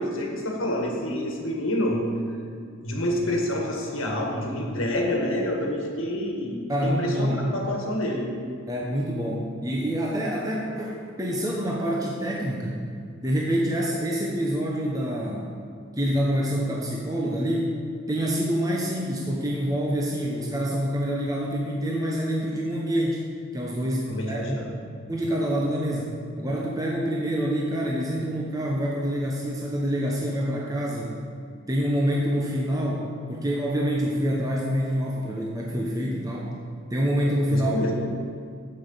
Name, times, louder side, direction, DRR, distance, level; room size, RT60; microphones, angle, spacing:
voice 1, 0.0-2.0 2.8-8.3 24.1-24.7 37.5-38.0, left 1 dB, 70° left, 0 dB, 1.7 m, -28 dB
voice 2, 6.7-7.6 8.7-12.8 13.2-15.6 16.0-17.7 18.1-23.2 23.5-24.6 25.1-31.2 31.7-36.5 36.9-37.8, equal, 15° right, -2 dB, 0.8 m, -26 dB
8.6 x 7.8 x 5.6 m, 2.3 s
head